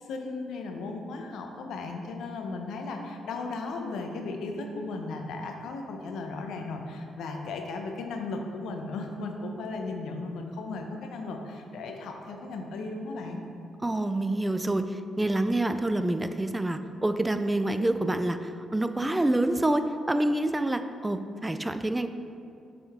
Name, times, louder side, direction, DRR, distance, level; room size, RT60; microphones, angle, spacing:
voice 1, 0.1-13.4, left 3 dB, 75° left, 3 dB, 0.6 m, -36 dB
voice 2, 13.8-22.1, right 1 dB, 15° right, 9 dB, 0.3 m, -27 dB
7.6 x 3.8 x 3.5 m, 2.5 s
supercardioid pair, 60°, 0 cm